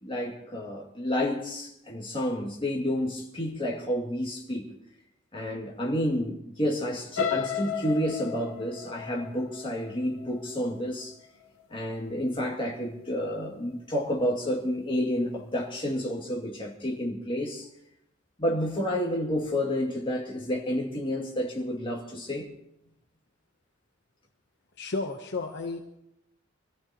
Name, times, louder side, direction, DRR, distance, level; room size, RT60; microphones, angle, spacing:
voice 1, 0.0-4.7 5.3-11.2 11.7-17.7 18.4-22.5, equal, 25° left, -1 dB, 2.4 m, -30 dB
sound 1, 7.2-11.1 11.6-11.9 12.2-12.3, left 8 dB, 80° left, 1.3 m, -34 dB
voice 2, 24.8-25.8, left 3 dB, 55° left, 4 dB, 1.0 m, -32 dB
24.5 x 14.0 x 3.0 m, 0.82 s
head